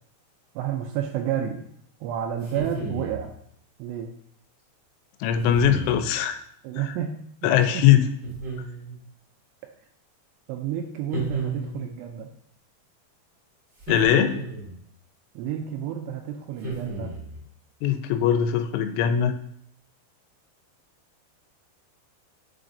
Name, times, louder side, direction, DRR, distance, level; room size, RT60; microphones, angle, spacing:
voice 1, 0.6-1.7 2.0-3.3 3.8-4.1 6.6-7.2 7.4-7.9 10.5-12.3 15.4-17.1, right 9 dB, 85° right, 4 dB, 2.4 m, -30 dB
sound 1, 2.4-3.3 5.4-6.0 8.2-9.0 11.1-12.0 13.8-14.8 16.6-17.4, right 2 dB, 35° right, 2.2 m, -33 dB
voice 2, 5.2-6.4 7.4-8.1 13.9-14.3 17.8-19.3, left 9 dB, 85° left, 8 dB, 2.9 m, -20 dB
10.5 x 4.0 x 2.6 m, 0.69 s
omnidirectional pair, 5.2 m